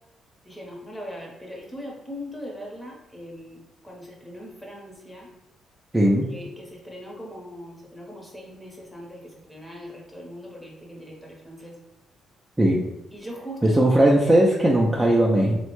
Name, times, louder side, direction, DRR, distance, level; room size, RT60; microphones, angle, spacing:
voice 1, 0.4-5.3 6.0-11.7 13.1-13.9, equal, 10° left, -2 dB, 0.9 m, -40 dB
voice 2, 5.9-6.3 12.6-12.8 13.6-15.6, right 1 dB, 10° right, -4 dB, 0.4 m, -18 dB
3.3 x 2.1 x 3.1 m, 0.99 s
cardioid pair, 90°, 0 cm